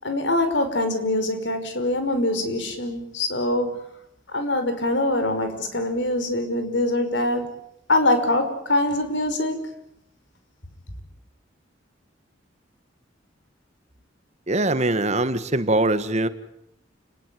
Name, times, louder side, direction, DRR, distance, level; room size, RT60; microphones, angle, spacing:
voice 1, 0.0-3.8 4.3-7.5 7.9-9.7, left 1 dB, 75° left, 8 dB, 5.6 m, -23 dB
voice 2, 14.5-16.3, right 2 dB, 35° right, 12 dB, 1.5 m, -22 dB
29.5 x 19.0 x 9.4 m, 0.81 s
head